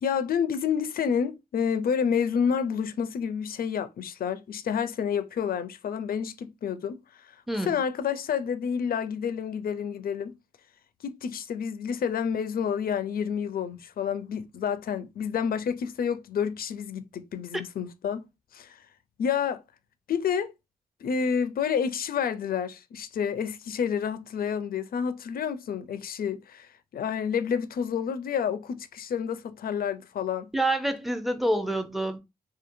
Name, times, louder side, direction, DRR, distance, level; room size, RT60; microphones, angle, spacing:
voice 1, 0.0-7.3 7.6-10.4 11.0-18.3 18.5-18.8 19.2-19.6 20.1-20.5 21.0-30.5, left 7 dB, 60° left, 0.4 m, -29 dB
voice 2, 30.5-32.2, right 1 dB, ahead, 0.5 m, -27 dB
2.7 x 2.2 x 2.6 m
cardioid pair, 55°, 17 cm